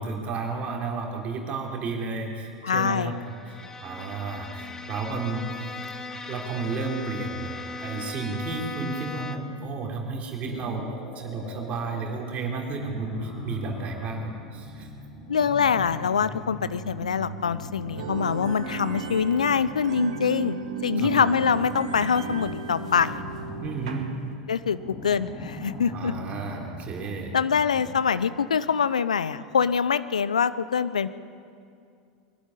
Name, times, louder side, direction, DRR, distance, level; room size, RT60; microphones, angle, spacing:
voice 1, 0.0-5.9 6.3-7.5 7.8-14.9 21.0-21.1 23.6-24.1 25.9-27.3, right 4 dB, 35° right, 0 dB, 3.5 m, -32 dB
voice 2, 2.6-3.2 15.3-20.6 20.8-23.2 24.5-26.1 27.3-31.1, left 7 dB, 80° left, 15 dB, 0.7 m, -24 dB
Bowed string instrument, 3.2-9.6, left 3 dB, 15° left, 1.4 m, -38 dB
sound 1, 10.4-12.1 12.7-19.9 20.9-28.3, equal, 40° left, 6.2 m, -40 dB
sound 2, 18.0-24.4, right 7 dB, 70° right, 1.8 m, -35 dB
22.5 x 12.0 x 9.9 m, 2.3 s
figure-of-eight pair, 85°, 4 cm